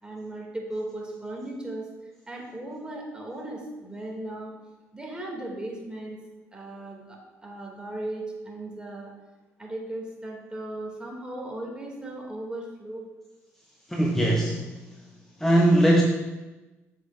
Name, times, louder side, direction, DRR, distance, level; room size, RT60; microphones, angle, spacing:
voice 1, 0.0-1.9 2.3-4.5 4.9-6.2 6.5-9.1 9.6-13.1, right 1 dB, 10° right, -2 dB, 2.7 m, -37 dB
voice 2, 13.9-14.8 15.4-16.0, right 1 dB, 5° left, -1 dB, 1.0 m, -20 dB
7.8 x 7.7 x 2.7 m, 1.1 s
figure-of-eight pair, 55°, 8 cm